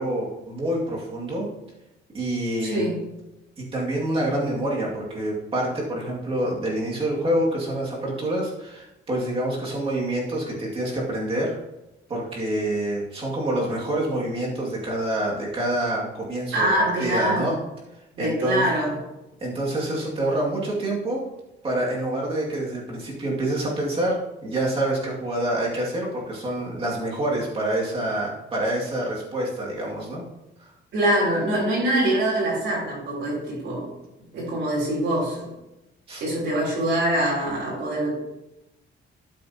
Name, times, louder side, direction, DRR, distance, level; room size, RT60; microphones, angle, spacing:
voice 1, 0.0-1.5 2.1-2.8 3.7-11.6 12.1-17.5 18.2-18.6 19.4-21.2 21.6-30.2 36.1-36.2, right 1 dB, 25° right, -4 dB, 2.3 m, -27 dB
voice 2, 2.6-2.9 16.5-17.5 18.2-18.9 30.9-33.9 34.3-35.5 36.2-38.1, right 1 dB, 65° right, -6 dB, 3.8 m, -24 dB
12.5 x 7.5 x 2.9 m, 0.94 s
cardioid pair, 160°, 21 cm